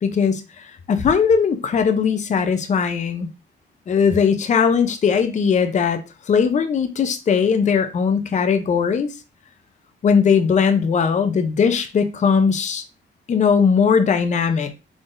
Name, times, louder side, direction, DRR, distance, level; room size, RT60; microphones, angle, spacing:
voice 1, 0.0-3.3 3.9-9.1 10.0-12.8 13.3-14.7, left 6 dB, 35° left, 0.6 m, -19 dB
3.7 x 3.7 x 2.5 m
cardioid pair, 90°, 20 cm